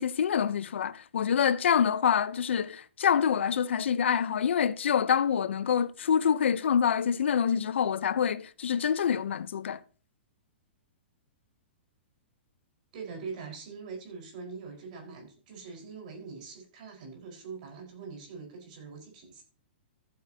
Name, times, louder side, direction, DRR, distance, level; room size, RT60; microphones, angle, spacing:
voice 1, 0.0-9.8, left 8 dB, 85° left, 0.8 m, -26 dB
voice 2, 12.9-19.4, right 5 dB, 40° right, 4.8 m, -43 dB
14.5 x 9.0 x 2.9 m
hypercardioid pair, 170°, 6 cm